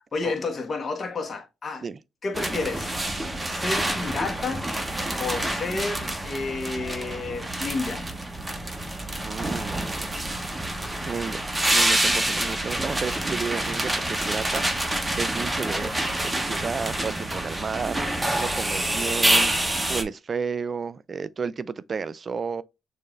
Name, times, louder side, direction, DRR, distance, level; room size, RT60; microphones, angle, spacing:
voice 1, 0.1-1.8 2.2-2.9 3.4-4.7 5.2-8.1, left 3 dB, 35° left, 1.3 m, -30 dB
sound 1, 2.3-20.0, right 1 dB, 15° right, 0.8 m, -27 dB
voice 2, 9.2-10.0 11.1-11.4 11.7-19.5 19.9-22.6, right 5 dB, 40° right, 0.4 m, -32 dB
6.6 x 2.5 x 3.2 m
cardioid pair, 90°, 0 cm